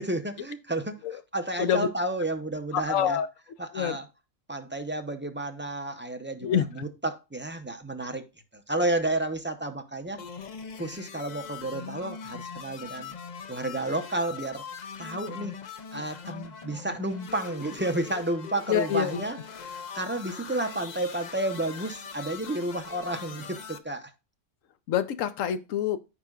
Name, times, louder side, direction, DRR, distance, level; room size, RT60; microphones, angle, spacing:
voice 1, 0.0-3.2 3.6-4.1 4.5-8.3 8.5-10.2 10.8-13.1 13.5-14.6 15.0-15.6 15.9-19.4 19.6-24.1, right 1 dB, 10° right, 0.6 m, -31 dB
voice 2, 2.7-3.3 3.7-4.0 6.4-6.7 18.7-19.2 24.9-26.0, left 9 dB, 70° left, 1.1 m, -26 dB
sound 1, 10.2-23.8, left 6 dB, 45° left, 0.6 m, -41 dB
13.5 x 4.7 x 2.4 m
omnidirectional pair, 1.4 m